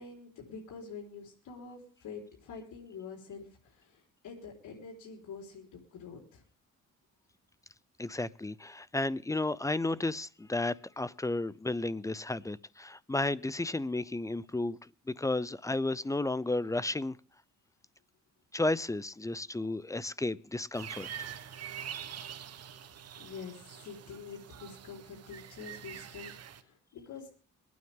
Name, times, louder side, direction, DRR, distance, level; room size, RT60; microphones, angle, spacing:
voice 1, 0.0-6.4 23.2-27.4, left 5 dB, 75° left, 4.1 m, -46 dB
voice 2, 8.0-17.2 18.5-21.1, left 2 dB, 10° left, 0.6 m, -33 dB
sound 1, 20.7-26.6, right 9 dB, 55° right, 1.3 m, -45 dB
23.5 x 9.4 x 3.6 m
cardioid pair, 90°, 30 cm